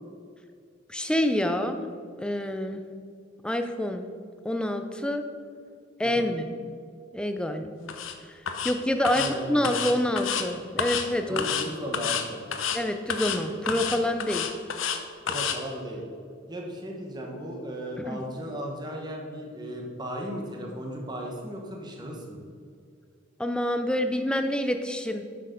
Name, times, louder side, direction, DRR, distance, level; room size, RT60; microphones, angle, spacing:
voice 1, 0.9-1.8 2.2-2.8 3.4-4.1 4.4-5.2 6.0-6.5 7.1-7.9 8.3-8.4 8.6-11.4 12.7-14.5 18.1-18.2 23.4-25.2, left 1 dB, 5° left, 6 dB, 0.5 m, -27 dB
sound 1, 7.9-8.1 8.5-8.7 9.0-9.3 9.6-10.4 10.8-11.1 11.4-11.7 11.9-12.2 12.5-12.8 13.1-13.4 13.7-15.0 15.3-15.6, left 7 dB, 90° left, 0.8 m, -29 dB
voice 2, 9.1-9.9 11.2-12.5 15.3-16.1 16.5-22.4, equal, 20° right, 0 dB, 1.2 m, -36 dB
8.4 x 6.4 x 5.2 m, 2.2 s
head